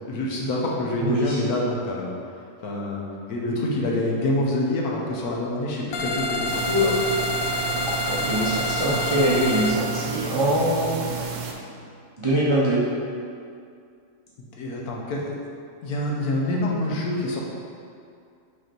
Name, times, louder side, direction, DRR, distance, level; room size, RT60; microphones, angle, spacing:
voice 1, 0.1-2.1 2.6-3.0 3.3-6.6 14.6-15.3 15.8-17.4, left 1 dB, 65° left, -3 dB, 1.2 m, -26 dB
voice 2, 1.1-1.4 6.7-6.9 8.0-11.0 12.2-12.8, equal, 35° right, -8 dB, 0.4 m, -23 dB
sound 1, 5.9-9.8, left 1 dB, 85° left, 1.3 m, -27 dB
sound 2, 6.5-11.5, right 5 dB, 80° right, 1.3 m, -32 dB
5.2 x 4.2 x 4.4 m, 2.3 s
omnidirectional pair, 1.9 m